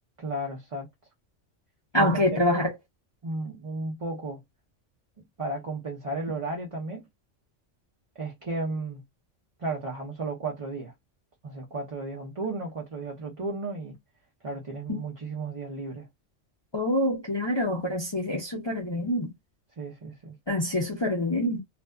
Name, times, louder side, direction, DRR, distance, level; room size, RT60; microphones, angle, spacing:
voice 1, 0.2-0.9 1.9-2.6 3.2-4.4 5.4-7.1 8.2-9.0 9.6-10.9 11.4-14.0 14.4-16.1 19.8-20.3, right 2 dB, 35° right, 0.6 m, -34 dB
voice 2, 1.9-2.7 14.9-15.0 16.7-19.3 20.5-21.6, left 1 dB, 30° left, 0.5 m, -26 dB
2.5 x 2.3 x 2.2 m
omnidirectional pair, 1.2 m